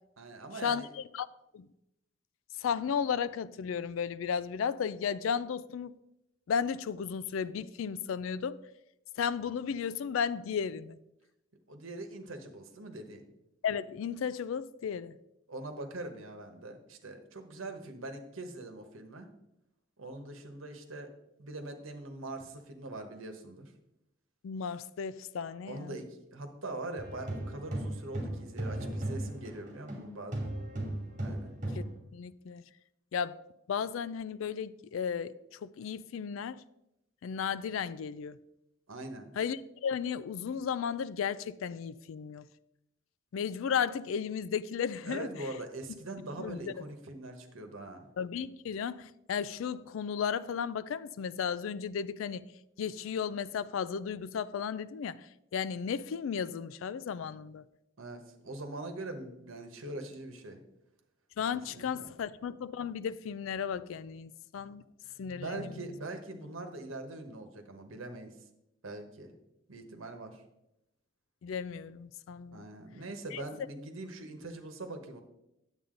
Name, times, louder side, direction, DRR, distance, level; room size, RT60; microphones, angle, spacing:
voice 1, 0.2-0.9 11.7-13.3 15.5-19.3 20.0-21.1 21.4-23.7 25.7-30.6 31.2-31.6 38.9-39.3 45.1-48.1 58.0-60.6 61.5-62.1 65.0-68.4 68.8-69.4 69.7-70.4 72.5-75.2, right 2 dB, 80° right, 1.2 m, -42 dB
voice 2, 2.6-5.9 6.5-8.6 9.2-11.0 13.6-15.2 24.4-26.0 31.8-31.9 32.1-32.6 33.1-33.4 33.7-36.6 37.2-38.4 39.4-42.5 43.3-45.3 46.4-46.7 48.2-52.5 52.8-55.2 55.5-57.6 61.4-64.8 65.2-65.7 71.4-72.7 73.3-73.4, left 7 dB, 75° left, 0.3 m, -34 dB
sound 1, 27.0-30.0 30.3-31.9, right 1 dB, 40° right, 2.5 m, -36 dB
9.4 x 8.1 x 3.8 m
head